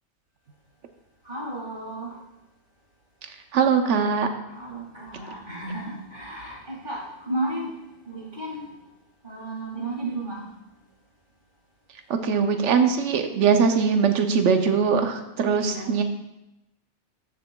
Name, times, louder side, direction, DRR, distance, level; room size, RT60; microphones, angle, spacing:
voice 1, 1.2-2.2 4.5-7.7 8.1-8.6 9.2-10.5 15.5-16.0, right 2 dB, 45° right, -4 dB, 2.5 m, -33 dB
voice 2, 3.5-4.3 12.1-16.0, right 6 dB, 85° right, 6 dB, 1.0 m, -21 dB
13.5 x 6.4 x 2.3 m, 0.91 s
omnidirectional pair, 1.2 m